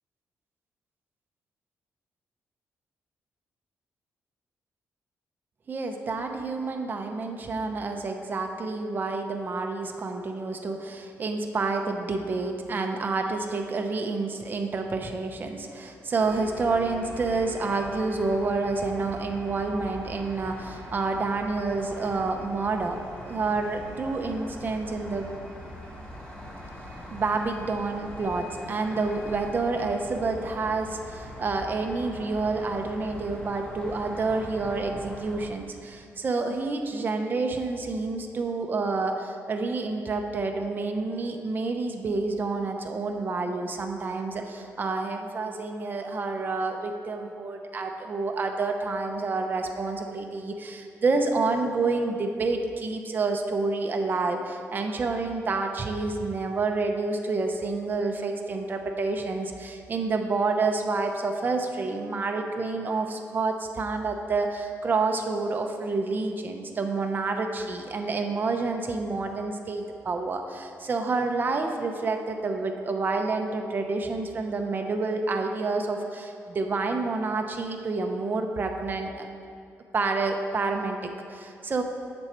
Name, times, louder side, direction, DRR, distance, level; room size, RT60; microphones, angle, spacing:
voice 1, 5.7-23.0 23.2-25.5 27.1-79.3 79.9-81.8, right 3 dB, 40° right, 4 dB, 0.6 m, -28 dB
sound 1, 16.2-35.5, left 1 dB, 20° left, 1.6 m, -42 dB
7.8 x 6.1 x 4.3 m, 2.4 s
cardioid pair, 110°, 5 cm